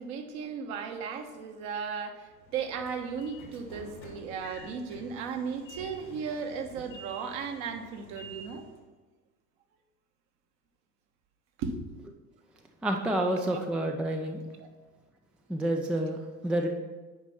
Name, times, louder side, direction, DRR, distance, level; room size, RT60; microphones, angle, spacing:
voice 1, 0.0-8.6 11.6-11.9, right 6 dB, 50° right, 5 dB, 1.4 m, -36 dB
Train / Sliding door, 2.3-8.8, equal, 90° left, 2.2 m, -49 dB
voice 2, 12.8-14.5 15.5-16.7, right 1 dB, ahead, 3 dB, 0.4 m, -29 dB
9.4 x 5.3 x 5.8 m, 1.3 s
figure-of-eight pair, 75°, 50 cm